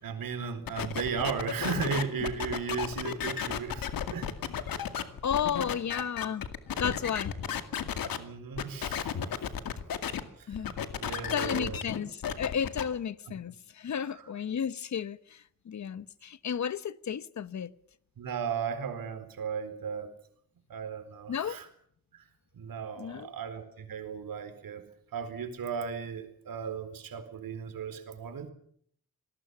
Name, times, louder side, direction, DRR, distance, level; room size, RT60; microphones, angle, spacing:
voice 1, 0.0-4.3 8.1-9.1 10.4-10.5 11.0-11.8 13.3-13.4 14.1-14.2 18.2-20.1 20.7-21.7 22.1-22.2 22.5-24.9 25.1-28.5, right 6 dB, 85° right, 4.4 m, -36 dB
sound 1, 0.7-8.2 8.6-10.2 10.5-12.8, left 8 dB, 85° left, 2.3 m, -34 dB
voice 2, 5.2-6.4 6.8-7.3 10.5-10.7 11.0-17.7 21.3-21.6 23.0-23.3, left 8 dB, 55° left, 1.1 m, -33 dB
27.5 x 20.0 x 7.1 m
wide cardioid pair, 120°, 34 cm